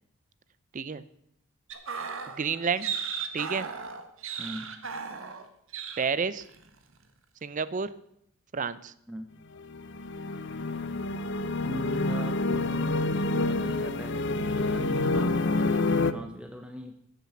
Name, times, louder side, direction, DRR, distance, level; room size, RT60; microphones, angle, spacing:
sound 1, 1.7-5.5 5.7-6.1 6.4-6.6, right 6 dB, 70° right, 1.4 m, -36 dB
voice 1, 2.3-3.0 3.3-3.7 6.0-6.4 7.4-7.9 8.5-8.9, right 5 dB, 40° right, 16 dB, 0.5 m, -30 dB
voice 2, 4.4-4.8 9.1-9.3 11.6-15.4 16.1-16.9, right 1 dB, 5° right, 5 dB, 0.8 m, -40 dB
sound 2, 9.6-16.1, left 2 dB, 55° left, 0.7 m, -28 dB
14.5 x 7.5 x 7.1 m, 0.75 s
head